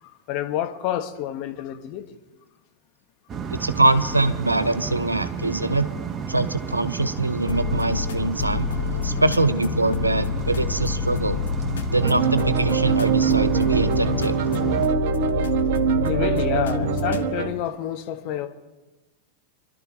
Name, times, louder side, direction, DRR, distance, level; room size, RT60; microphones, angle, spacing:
voice 1, 0.0-2.2 16.0-18.5, left 11 dB, 45° left, 1.3 m, -29 dB
sound 1, 3.3-14.9, right 6 dB, 25° right, 0.9 m, -32 dB
voice 2, 3.5-5.9 6.3-8.7 9.0-11.4 11.9-14.4, right 2 dB, 85° right, 0.7 m, -23 dB
sound 2, 7.5-17.3, left 6 dB, 65° left, 0.9 m, -28 dB
sound 3, 12.0-17.5, right 8 dB, 50° right, 1.0 m, -23 dB
27.5 x 12.0 x 2.8 m
figure-of-eight pair, 90°, 0 cm